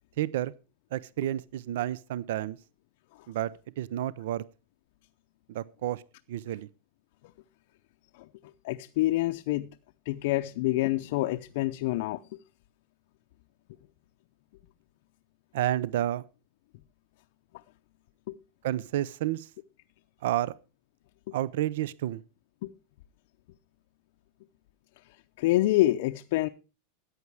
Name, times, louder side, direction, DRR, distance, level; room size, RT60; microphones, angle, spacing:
voice 1, 0.2-0.5 0.9-2.6 3.3-4.4 5.5-6.0 6.3-6.7 15.5-16.2 18.6-19.5 20.2-20.5 21.3-22.2, right 13 dB, 65° right, 0.5 m, -30 dB
voice 2, 8.6-9.7 10.1-12.2 18.3-18.4 22.6-22.7 25.4-26.5, left 16 dB, 55° left, 0.6 m, -26 dB
14.0 x 9.5 x 4.7 m
supercardioid pair, 175°, 0 cm